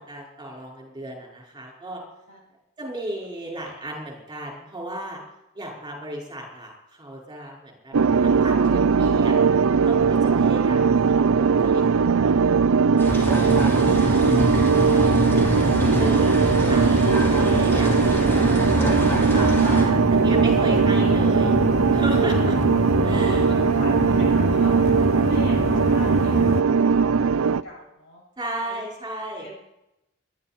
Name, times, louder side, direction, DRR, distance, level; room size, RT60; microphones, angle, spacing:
voice 1, 0.0-2.0 2.8-5.2 5.5-7.9 8.2-9.4 9.8-12.8 13.1-14.8 16.0-18.9 19.3-21.6 21.9-22.6 23.0-23.4 28.4-29.5, right 1 dB, 20° right, -1 dB, 4.9 m, -35 dB
sound 1, 7.9-27.6, right 5 dB, 75° right, 0.5 m, -19 dB
sound 2, 13.0-26.6, left 3 dB, 35° left, 0.4 m, -27 dB
sound 3, 13.0-19.8, equal, 10° left, 4.1 m, -31 dB
voice 2, 23.1-28.2 28.6-28.8 29.4-29.5, left 1 dB, 60° left, -2 dB, 6.8 m, -40 dB
22.5 x 11.0 x 4.3 m, 0.88 s
head